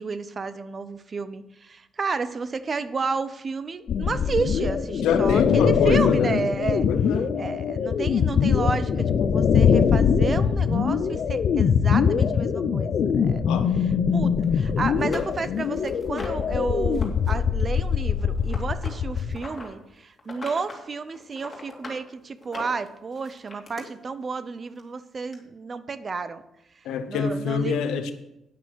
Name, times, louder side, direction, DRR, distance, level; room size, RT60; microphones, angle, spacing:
voice 1, 0.0-6.9 7.4-13.6 14.1-26.4 27.1-27.8, right 4 dB, 40° right, 0.6 m, -31 dB
sound 1, 3.9-19.3, left 6 dB, 60° left, 0.6 m, -22 dB
voice 2, 5.0-6.4 6.9-7.3 13.5-13.7 26.8-28.1, left 7 dB, 90° left, 0.8 m, -25 dB
sound 2, 14.4-14.5 15.0-16.5 16.9-17.3 17.6-19.7 20.2-20.8 21.1-22.0 22.4-23.8 24.8-24.9 25.3-25.4, left 2 dB, 30° left, 2.5 m, -40 dB
9.4 x 6.1 x 6.2 m
cardioid pair, 90°, 0 cm